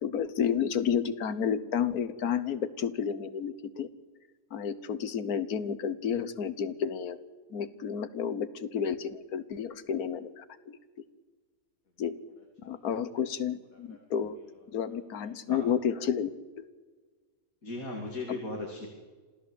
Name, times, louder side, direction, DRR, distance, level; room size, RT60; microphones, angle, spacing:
voice 1, 0.0-3.9 4.5-7.2 7.5-10.8 12.0-12.2 12.6-14.4 14.7-16.6, left 8 dB, 85° left, 14 dB, 1.6 m, -31 dB
voice 2, 17.6-18.9, left 2 dB, 70° left, 2 dB, 3.2 m, -37 dB
27.0 x 16.0 x 8.1 m, 1.4 s
omnidirectional pair, 1.5 m